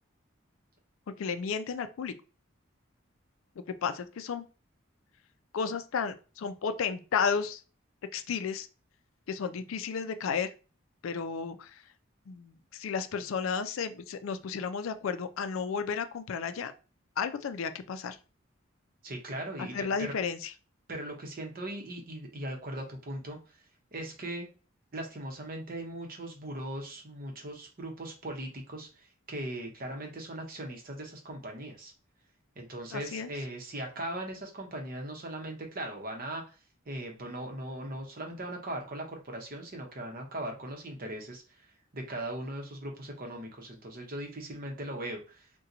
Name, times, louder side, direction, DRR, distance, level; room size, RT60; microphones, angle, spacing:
voice 1, 1.2-2.1 3.7-4.4 5.5-7.6 8.1-8.7 9.3-10.5 11.0-11.7 12.3-16.7 17.2-18.2 19.6-20.5 32.9-33.3, left 6 dB, 85° left, 10 dB, 0.4 m, -33 dB
voice 2, 19.0-20.1 20.9-23.4 23.9-24.5 24.9-31.9 32.6-36.5 36.9-41.4 41.9-45.5, right 1 dB, 45° right, 1 dB, 0.8 m, -39 dB
2.8 x 2.2 x 3.8 m, 0.34 s
head